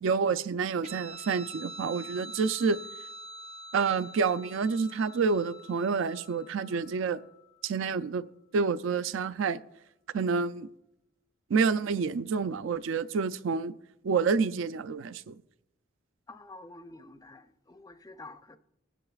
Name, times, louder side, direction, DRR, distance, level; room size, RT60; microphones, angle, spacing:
voice 1, 0.0-2.8 3.7-7.2 7.6-8.2 8.5-9.6 10.1-10.7 11.5-13.7 14.0-15.3, right 5 dB, 70° right, 0.4 m, -28 dB
Guitar, 0.8-7.7, equal, 35° right, 1.1 m, -46 dB
voice 2, 16.3-18.6, left 2 dB, 20° left, 0.4 m, -48 dB
20.0 x 9.9 x 2.4 m
head